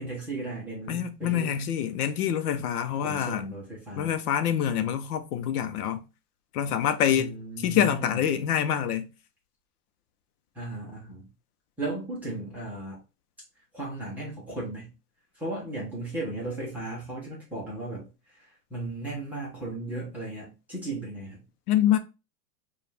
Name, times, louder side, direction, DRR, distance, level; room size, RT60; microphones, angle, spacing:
voice 1, 0.0-1.5 3.0-4.2 4.7-4.9 7.1-8.2 10.5-11.3 11.8-13.0 13.7-14.9 15.3-21.4, right 2 dB, 5° right, 0.5 m, -36 dB
voice 2, 0.9-3.4 4.0-6.0 6.5-7.3 7.6-9.1 21.7-22.0, left 9 dB, 65° left, 0.7 m, -26 dB
4.8 x 2.4 x 3.2 m
supercardioid pair, 170°, 48 cm